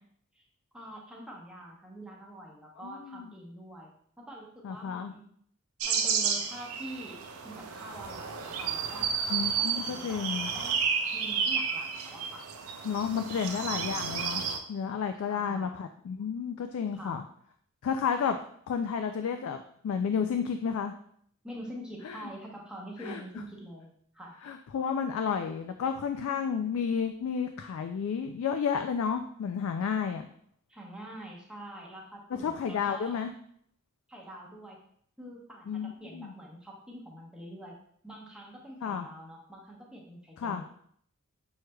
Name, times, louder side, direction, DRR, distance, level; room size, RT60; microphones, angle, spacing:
voice 1, 0.7-3.9 4.2-5.2 5.8-9.1 9.6-10.8 11.1-12.4 13.2-13.7 15.2-15.7 16.9-17.2 21.4-24.3 30.7-33.1 34.1-34.8 35.2-37.8 38.0-40.7, right 1 dB, 5° right, -2 dB, 0.8 m, -45 dB
voice 2, 2.8-3.3 4.6-5.1 9.3-10.5 12.8-14.4 14.7-17.2 17.8-18.4 18.7-19.6 19.8-20.9 22.0-22.3 23.0-23.2 24.4-30.3 32.3-33.3 35.7-36.3 38.8-39.1 40.4-40.6, left 6 dB, 75° left, 6 dB, 0.3 m, -31 dB
sound 1, 5.8-14.6, right 6 dB, 85° right, 0.5 m, -31 dB
6.2 x 3.2 x 2.2 m, 0.64 s
head